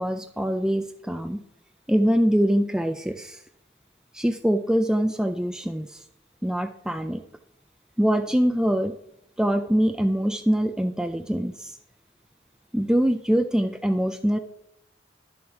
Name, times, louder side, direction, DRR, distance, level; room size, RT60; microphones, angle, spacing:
voice 1, 0.0-1.4 1.9-3.4 4.1-6.0 6.4-7.2 8.0-9.0 9.4-11.7 12.7-14.4, equal, 5° right, 7 dB, 0.4 m, -23 dB
11.0 x 7.1 x 4.9 m, 0.78 s
head